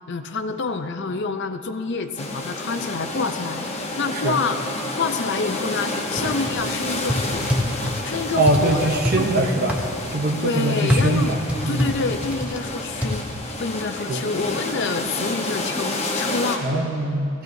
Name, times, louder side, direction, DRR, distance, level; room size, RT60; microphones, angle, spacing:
voice 1, 0.1-4.7 5.0-7.6 8.0-8.9 9.1-9.3 10.4-11.4 11.7-13.3 13.6-16.8, left 4 dB, 55° left, 8 dB, 0.5 m, -27 dB
sound 1, 2.2-16.6, left 2 dB, 30° left, 1.0 m, -30 dB
sound 2, 6.2-6.7 7.1-8.0 8.5-9.2 9.7-9.8 10.9-12.6 13.0-13.1, left 1 dB, 5° right, 0.9 m, -24 dB
voice 2, 8.4-9.8 10.1-11.4 11.6-11.9 14.1-14.3 16.6-17.4, right 1 dB, 45° right, 2 dB, 0.7 m, -22 dB
15.5 x 15.0 x 2.7 m, 2.7 s
head